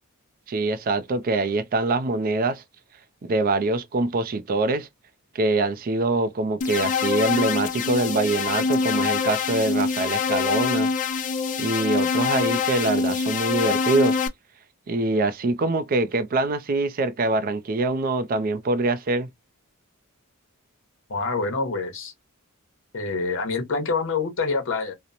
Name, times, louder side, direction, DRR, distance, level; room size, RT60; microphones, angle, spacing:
voice 1, 0.5-2.6 3.2-4.9 5.3-10.9 11.6-14.2 14.9-19.3, right 2 dB, 40° right, 0.4 m, -24 dB
sound 1, 6.6-14.3, left 5 dB, 35° left, 0.3 m, -25 dB
voice 2, 21.1-22.1 22.9-24.9, left 4 dB, 60° left, 0.8 m, -26 dB
2.8 x 2.0 x 2.4 m
head